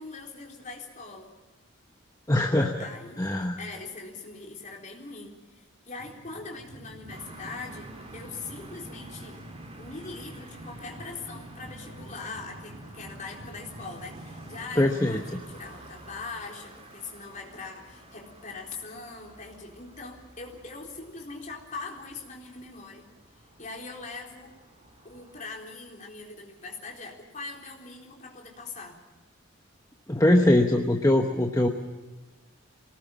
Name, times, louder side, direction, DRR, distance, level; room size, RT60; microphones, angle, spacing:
voice 1, 0.0-1.3 2.8-9.4 9.8-23.1 23.4-24.5 25.0-29.0, left 3 dB, 35° left, 0 dB, 4.0 m, -42 dB
voice 2, 2.3-2.9 3.2-3.6 14.8-15.2 30.1-31.7, left 1 dB, 15° left, 3 dB, 1.1 m, -22 dB
sound 1, 6.0-16.9, right 1 dB, 55° right, 2.3 m, -46 dB
sound 2, 7.1-25.5, right 1 dB, 30° right, 4.0 m, -51 dB
24.0 x 19.0 x 7.4 m, 1.2 s
head